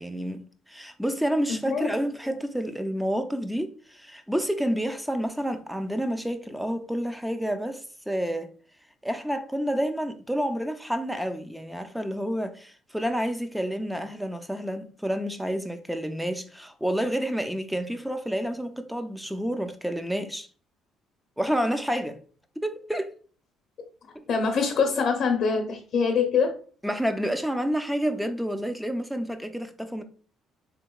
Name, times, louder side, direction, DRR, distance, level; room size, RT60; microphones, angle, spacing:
voice 1, 0.0-8.5 9.0-20.5 21.4-22.2 22.6-23.1 24.1-24.2 26.8-30.0, equal, 5° right, 0.4 m, -29 dB
voice 2, 24.3-26.6, left 5 dB, 60° left, 0.6 m, -24 dB
3.5 x 2.8 x 2.3 m
cardioid pair, 90°, 0 cm